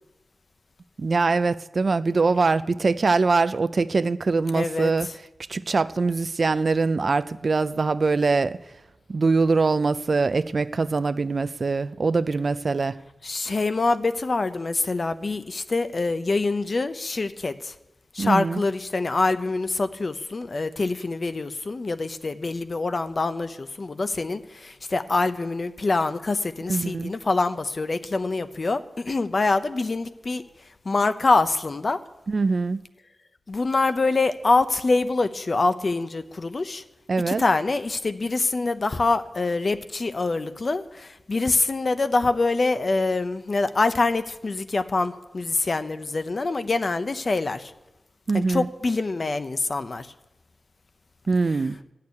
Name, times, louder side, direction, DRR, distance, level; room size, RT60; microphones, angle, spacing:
voice 1, 1.0-5.1 5.5-8.6 9.1-13.0 18.2-18.6 26.7-27.1 32.3-32.8 37.1-37.4 48.3-48.7 51.3-51.8, right 4 dB, 50° right, 14 dB, 0.4 m, -23 dB
voice 2, 4.5-4.9 13.2-17.7 18.1-30.4 30.8-32.0 33.5-36.8 37.3-47.7 48.3-50.1, left 3 dB, 45° left, 10 dB, 0.7 m, -25 dB
13.0 x 6.6 x 9.6 m, 0.98 s
wide cardioid pair, 80°, 0 cm